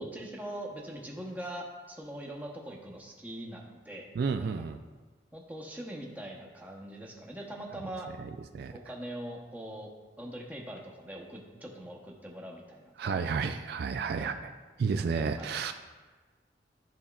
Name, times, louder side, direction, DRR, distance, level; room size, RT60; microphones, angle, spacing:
voice 1, 0.0-4.1 4.4-4.6 5.3-8.1 8.7-9.9 10.2-13.3 14.1-14.3 15.4-15.5, right 1 dB, 10° right, -1 dB, 0.8 m, -42 dB
voice 2, 4.2-4.8 8.5-8.7 13.0-14.3 14.8-15.7, right 5 dB, 60° right, 7 dB, 0.3 m, -31 dB
12.0 x 4.3 x 2.3 m, 1.3 s
head